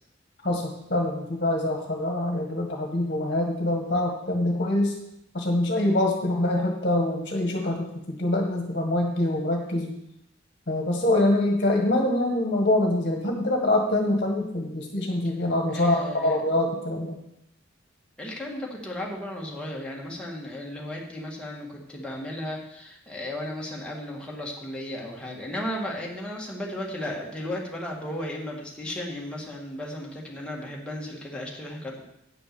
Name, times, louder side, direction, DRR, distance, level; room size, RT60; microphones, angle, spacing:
voice 1, 0.4-4.9 5.3-9.9 10.7-17.2, left 1 dB, 45° left, 1 dB, 1.6 m, -25 dB
voice 2, 15.7-16.4 18.2-32.0, left 1 dB, 5° left, -3 dB, 2.0 m, -35 dB
9.4 x 6.3 x 7.0 m, 0.82 s
head